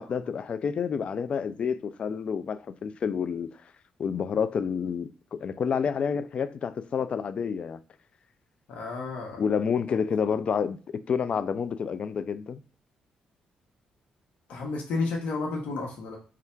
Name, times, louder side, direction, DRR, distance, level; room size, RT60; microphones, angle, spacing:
voice 1, 0.0-3.5 4.0-7.8 9.4-10.8 11.1-12.6, left 6 dB, 50° left, 0.3 m, -29 dB
voice 2, 8.7-9.4 14.5-16.2, left 3 dB, 80° left, 1.0 m, -31 dB
3.3 x 2.4 x 4.4 m
cardioid pair, 90°, 2 cm